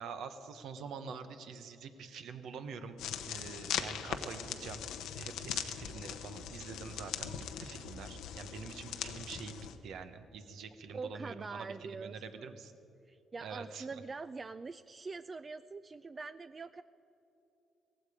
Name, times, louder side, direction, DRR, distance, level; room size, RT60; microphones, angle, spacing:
voice 1, 0.0-4.9 5.1-12.7 13.4-13.9, right 5 dB, 75° right, 9 dB, 1.0 m, -46 dB
sound 1, 3.0-9.8, left 9 dB, 90° left, 0.8 m, -40 dB
voice 2, 10.9-12.6 13.1-16.8, right 4 dB, 35° right, 12 dB, 0.3 m, -44 dB
17.0 x 15.5 x 5.0 m, 3.0 s
cardioid pair, 90°, 0 cm